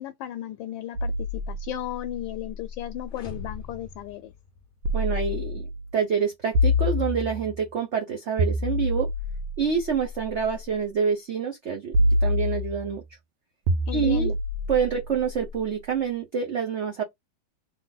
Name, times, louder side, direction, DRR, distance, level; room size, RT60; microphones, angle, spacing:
voice 1, 0.0-4.3 13.9-14.4, left 12 dB, 80° left, 1.3 m, -35 dB
sound 1, 1.0-3.7 4.8-5.9 6.5-7.7 8.4-10.6 11.9-13.0 13.7-15.8, left 1 dB, 85° right, 1.6 m, -27 dB
sound 2, 3.1-5.2, left 4 dB, 50° left, 0.6 m, -43 dB
voice 2, 4.9-9.1 9.6-11.9 12.2-13.0 13.9-14.3 14.7-17.0, right 6 dB, 55° right, 0.8 m, -27 dB
3.3 x 3.1 x 3.8 m
omnidirectional pair, 2.2 m